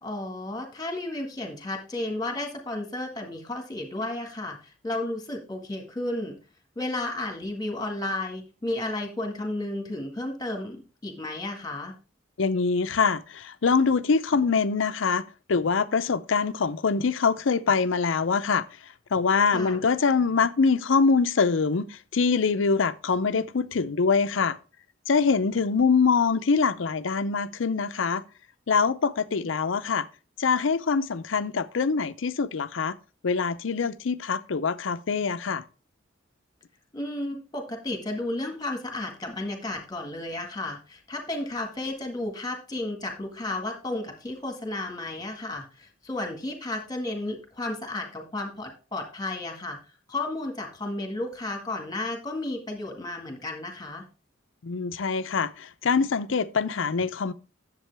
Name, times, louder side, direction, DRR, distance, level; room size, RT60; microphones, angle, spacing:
voice 1, 0.0-6.4 6.8-11.9 19.5-19.9 36.9-49.8 50.1-54.0, left 2 dB, 20° left, 1.7 m, -33 dB
voice 2, 12.4-15.2 15.5-18.6 19.1-24.6 25.1-28.2 28.7-30.1 30.4-33.0 33.2-35.6 54.6-57.3, left 5 dB, 80° left, 0.6 m, -24 dB
10.5 x 7.5 x 3.4 m
head